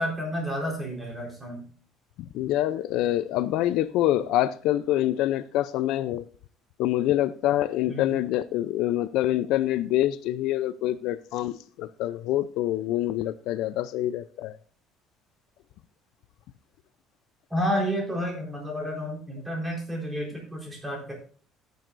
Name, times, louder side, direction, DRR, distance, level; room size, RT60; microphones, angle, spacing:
voice 1, 0.0-1.6 7.9-8.2 17.5-21.1, equal, 5° right, 4.1 m, -30 dB
voice 2, 2.3-6.2 6.8-14.6, left 13 dB, 65° left, 0.5 m, -26 dB
15.0 x 9.2 x 2.6 m
cardioid pair, 170°, 0 cm